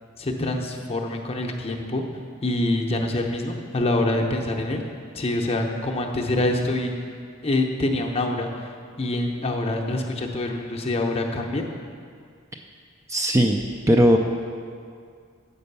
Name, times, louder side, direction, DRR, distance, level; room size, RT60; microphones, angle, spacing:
voice 1, 0.2-2.0 2.4-4.9 5.1-6.9 7.4-8.7 9.0-11.6, left 1 dB, 30° left, 2 dB, 0.7 m, -25 dB
voice 2, 13.1-13.6 13.9-14.2, equal, 15° right, 2 dB, 0.4 m, -17 dB
7.8 x 5.4 x 6.7 m, 2.2 s
head